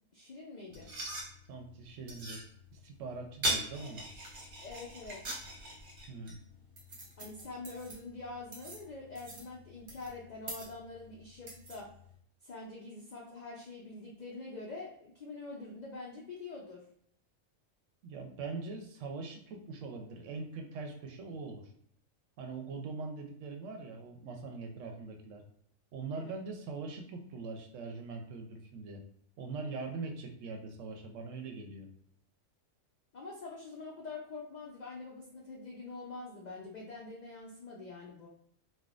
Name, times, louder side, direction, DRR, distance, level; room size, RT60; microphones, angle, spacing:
voice 1, 0.1-0.9 4.6-5.2 7.2-11.9 12.4-16.8 24.8-25.0 26.1-26.4 33.1-38.3, left 3 dB, 70° left, -3 dB, 0.4 m, -45 dB
Fork Knife on plate Scuffs and scrapes close to mic, 0.7-12.2, right 1 dB, 45° right, 0.8 m, -42 dB
voice 2, 1.5-2.4 2.7-4.1 6.1-6.4 18.0-21.7 22.4-25.4 25.9-29.0 29.4-31.9, right 4 dB, 70° right, 3 dB, 0.9 m, -42 dB
3.3 x 2.2 x 2.4 m, 0.66 s
omnidirectional pair, 1.4 m